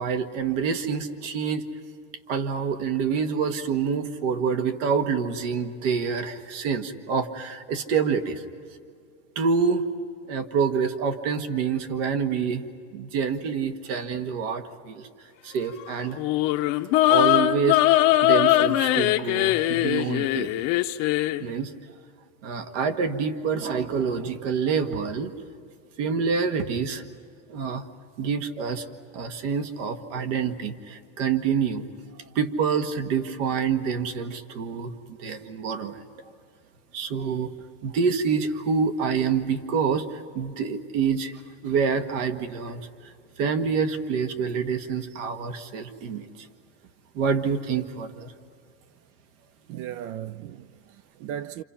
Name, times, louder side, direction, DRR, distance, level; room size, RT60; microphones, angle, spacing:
voice 1, 0.0-1.7 2.3-8.4 9.4-9.8 10.3-12.6 12.9-15.1 15.4-16.2 17.1-20.5 21.4-21.7 22.4-25.3 26.0-27.0 27.5-27.8 28.2-28.9 29.1-31.9 32.4-36.0 36.9-37.5 37.8-41.3 41.6-42.8 43.4-46.5 47.1-48.3, right 6 dB, 65° right, 1.7 m, -27 dB
sound 1, 16.2-21.4, left 15 dB, 55° left, 0.8 m, -21 dB
voice 2, 49.7-51.6, right 10 dB, 50° right, 0.6 m, -37 dB
28.0 x 27.5 x 5.8 m
supercardioid pair, 130°, 39 cm